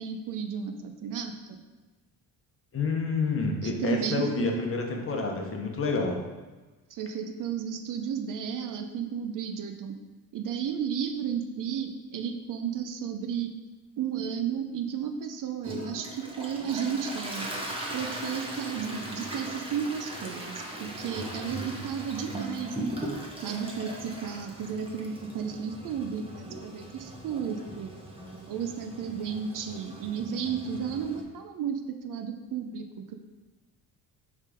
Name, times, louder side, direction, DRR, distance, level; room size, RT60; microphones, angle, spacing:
voice 1, 0.0-1.6 3.6-4.6 6.9-9.9 10.3-13.5 14.0-17.5 17.9-22.8 23.4-27.9 28.5-33.1, right 7 dB, 55° right, 7 dB, 0.7 m, -33 dB
voice 2, 2.7-6.2, left 4 dB, 35° left, 1 dB, 1.1 m, -28 dB
Toilet flush, 15.6-31.2, right 1 dB, 15° right, 1.2 m, -39 dB
7.5 x 3.7 x 5.1 m, 1.2 s
cardioid pair, 135°, 38 cm